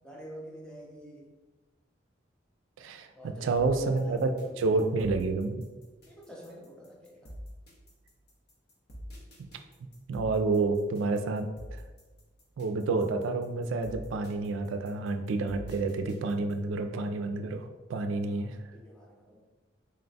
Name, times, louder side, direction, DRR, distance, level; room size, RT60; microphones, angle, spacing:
voice 1, 0.0-1.3 3.2-4.9 6.1-7.3 18.1-19.4, equal, 5° left, -2 dB, 0.5 m, -47 dB
voice 2, 2.8-3.1 3.4-4.3 4.6-5.6 10.1-11.8 12.6-18.5, right 3 dB, 85° right, 6 dB, 0.3 m, -29 dB
sound 1, 3.6-16.7, equal, 55° left, 0.9 m, -47 dB
3.8 x 2.2 x 3.9 m, 1.2 s
head